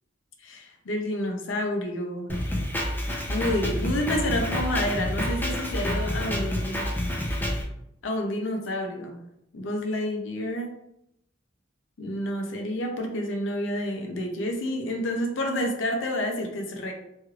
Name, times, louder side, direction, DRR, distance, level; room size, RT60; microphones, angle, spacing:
voice 1, 0.4-2.3 3.0-6.9 8.0-9.2 9.5-10.7 12.0-16.9, left 1 dB, 75° left, 3 dB, 0.6 m, -29 dB
Drum kit, 2.3-7.6, equal, 10° left, 0.5 m, -28 dB
3.1 x 3.1 x 2.3 m, 0.79 s
head